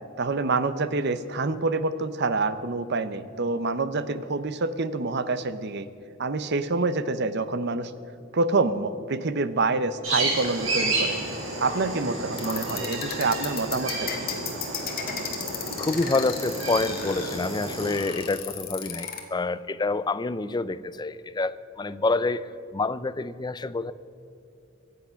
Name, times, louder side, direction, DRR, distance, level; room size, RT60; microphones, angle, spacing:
voice 1, 0.2-5.9 6.2-7.9 8.3-11.2 11.6-14.3, right 3 dB, 55° right, 13 dB, 0.7 m, -27 dB
sound 1, 10.0-17.9, right 2 dB, 80° right, 4.6 m, -31 dB
sound 2, 12.3-19.2, left 8 dB, 45° left, 1.7 m, -35 dB
voice 2, 15.8-22.4 22.7-23.9, left 3 dB, 20° left, 15 dB, 0.4 m, -27 dB
23.5 x 8.4 x 5.7 m, 2.6 s
head